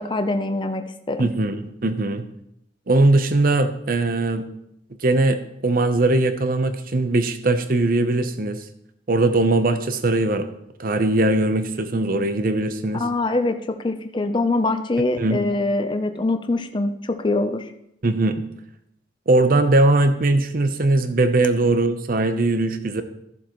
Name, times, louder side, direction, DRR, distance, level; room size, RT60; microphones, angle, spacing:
voice 1, 0.0-1.3 12.9-17.7, left 2 dB, 25° left, 7 dB, 0.6 m, -24 dB
voice 2, 1.2-2.2 2.9-4.5 5.0-5.4 5.6-8.6 9.1-10.5 10.8-13.0 15.2-15.4 18.0-18.4 19.3-23.0, right 2 dB, 50° right, 9 dB, 0.8 m, -20 dB
15.0 x 7.3 x 3.1 m, 0.79 s
head